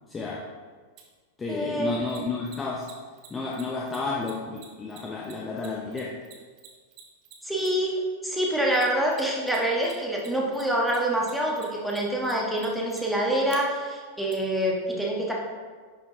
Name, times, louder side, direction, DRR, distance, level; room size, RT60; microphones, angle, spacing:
voice 1, 0.1-0.5 1.4-2.9 3.3-6.2, left 3 dB, 15° left, -2 dB, 0.7 m, -31 dB
Mechanisms, 1.0-1.1 2.1-8.0 8.7-9.6 9.8-13.6 14.3-14.4, right 10 dB, 40° right, 1.1 m, -48 dB
voice 2, 1.5-1.9 7.4-15.3, right 1 dB, ahead, -2 dB, 1.3 m, -26 dB
10.5 x 4.5 x 2.7 m, 1.5 s
figure-of-eight pair, 90°, 0 cm